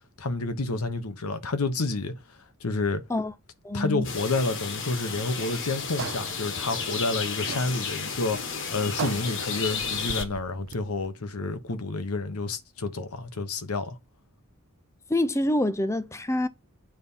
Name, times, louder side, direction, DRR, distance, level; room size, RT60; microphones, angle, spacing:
voice 1, 0.2-2.1 2.6-3.0 3.7-14.0, left 3 dB, 90° left, 1.0 m, -29 dB
voice 2, 3.6-4.1 15.1-16.5, left 1 dB, 15° left, 0.5 m, -26 dB
sound 1, 4.0-10.2, left 5 dB, 55° left, 1.3 m, -33 dB
sound 2, 6.0-11.1, right 5 dB, 60° right, 0.5 m, -39 dB
9.2 x 4.2 x 5.5 m
head